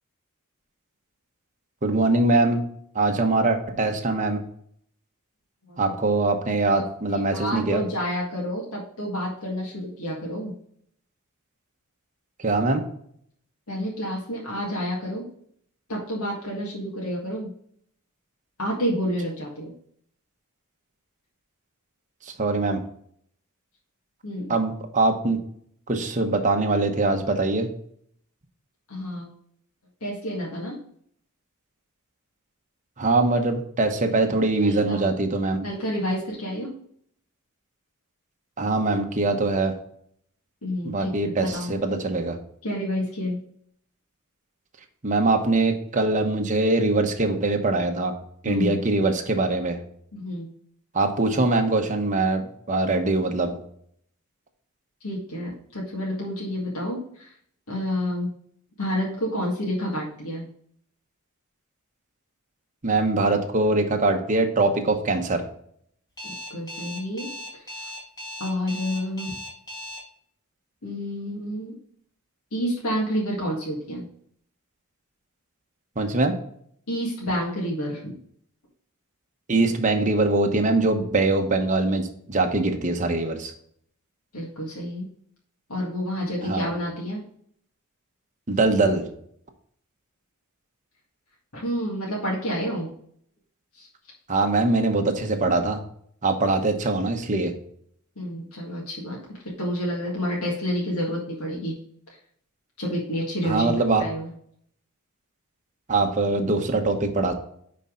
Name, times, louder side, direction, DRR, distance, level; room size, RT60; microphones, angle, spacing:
voice 1, 1.8-2.6 2.9-4.4 5.8-7.8 12.4-12.9 22.2-22.8 24.5-25.4 25.9-27.7 33.0-35.6 38.6-39.8 40.8-42.4 45.0-48.2 48.4-49.8 50.9-53.5 62.8-65.4 76.0-76.3 79.5-83.5 86.4-86.6 88.5-89.1 94.3-95.8 96.2-97.5 103.4-104.0 105.9-107.3, right 2 dB, 35° right, 4 dB, 1.0 m, -22 dB
voice 2, 7.3-10.5 13.7-15.2 15.9-17.5 18.6-19.7 24.2-24.5 28.9-29.3 30.0-30.8 34.6-35.1 35.6-36.7 40.6-41.7 42.6-43.4 48.5-48.8 50.1-50.5 55.0-57.3 57.7-58.3 58.8-60.4 66.2-67.8 68.4-69.3 70.8-71.8 72.5-74.1 76.9-78.1 84.3-85.1 85.7-87.2 91.5-92.9 93.7-93.9 98.2-99.2 99.6-101.7 102.8-103.7 104.0-104.3, equal, 80° left, -3 dB, 1.9 m, -29 dB
Alarm, 66.2-70.0, left 1 dB, 15° left, 2.2 m, -37 dB
9.9 x 4.3 x 3.8 m, 0.66 s
head